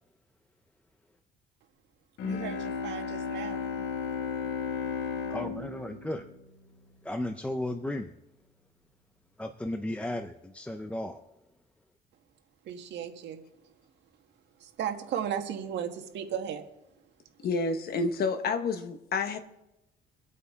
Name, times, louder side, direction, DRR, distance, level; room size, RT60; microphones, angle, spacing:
Bowed string instrument, 2.2-7.3, left 5 dB, 90° left, 1.5 m, -35 dB
voice 1, 2.2-3.6 12.6-13.4 14.6-16.6, right 8 dB, 85° right, 5 dB, 1.5 m, -35 dB
voice 2, 5.3-6.3 7.0-8.1 9.4-11.2, left 1 dB, 5° left, 6 dB, 0.6 m, -34 dB
voice 3, 17.4-19.4, left 4 dB, 60° left, 8 dB, 1.4 m, -29 dB
25.0 x 8.4 x 3.6 m, 0.90 s
cardioid pair, 135°, 18 cm